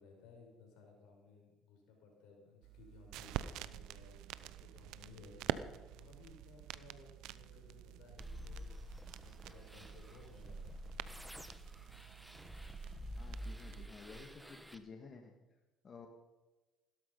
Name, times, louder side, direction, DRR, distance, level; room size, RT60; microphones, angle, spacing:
voice 1, 0.0-10.9, left 4 dB, 80° left, 1 dB, 5.6 m, -60 dB
sound 1, 2.6-13.9, right 13 dB, 80° right, 0.6 m, -47 dB
sound 2, 8.2-14.8, equal, 5° right, 1.4 m, -49 dB
voice 2, 13.2-15.4 15.8-16.1, left 4 dB, 45° left, 3 dB, 1.9 m, -53 dB
16.0 x 12.5 x 5.5 m, 1.1 s
supercardioid pair, 80°, 0 cm